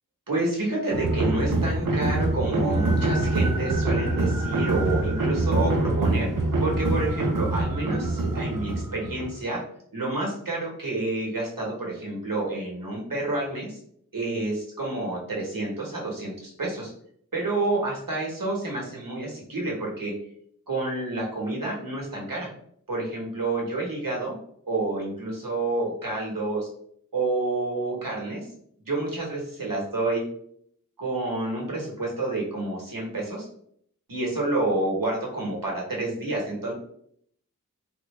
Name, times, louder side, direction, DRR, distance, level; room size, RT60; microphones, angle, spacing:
voice 1, 0.3-6.3 6.6-9.6 9.9-13.8 14.1-16.9 17.3-20.1 20.7-22.5 22.9-24.4 24.7-26.7 27.1-28.5 28.9-30.2 31.0-33.5 34.1-36.7, right 2 dB, 85° right, -3 dB, 1.2 m, -29 dB
sound 1, 0.9-9.4, right 2 dB, 70° right, 0.6 m, -25 dB
3.8 x 2.1 x 3.1 m, 0.66 s
wide cardioid pair, 40°, 33 cm